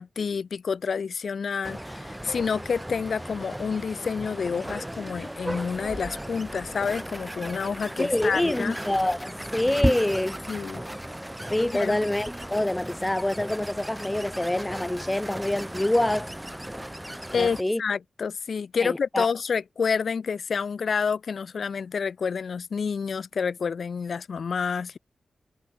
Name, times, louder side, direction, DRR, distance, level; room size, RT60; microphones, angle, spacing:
voice 1, 0.0-8.8 10.5-10.8 11.7-12.0 17.3-25.0, left 6 dB, 65° left, 4.0 m, -29 dB
sound 1, 1.6-17.6, right 1 dB, 5° right, 2.0 m, -35 dB
voice 2, 8.0-10.4 11.5-16.3 17.4-17.8 18.8-19.3, left 1 dB, 10° left, 0.6 m, -26 dB
wide cardioid pair, 140°, 0 cm